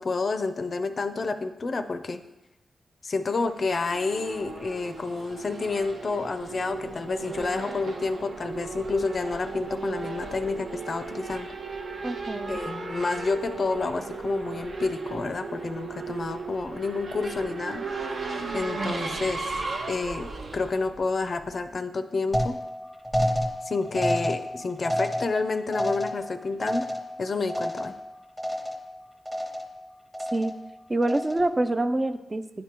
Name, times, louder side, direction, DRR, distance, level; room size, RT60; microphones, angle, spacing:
voice 1, 0.0-2.2 3.0-11.5 12.5-17.8 18.5-19.4 19.9-22.6 23.6-26.9 27.2-27.9, left 3 dB, 50° left, 8 dB, 0.4 m, -29 dB
Race car auto racing / Accelerating revving vroom, 3.5-21.7, right 4 dB, 65° right, 0.7 m, -36 dB
voice 2, 12.0-12.6 30.3-30.5 30.9-32.4, right 2 dB, 25° right, 10 dB, 0.4 m, -26 dB
sound 1, 22.3-28.1 28.4-28.9 29.3-29.8 30.1-30.7 31.0-31.6, equal, 5° right, 0.9 m, -30 dB
9.9 x 3.4 x 2.9 m, 1.0 s
cardioid pair, 60°, 0 cm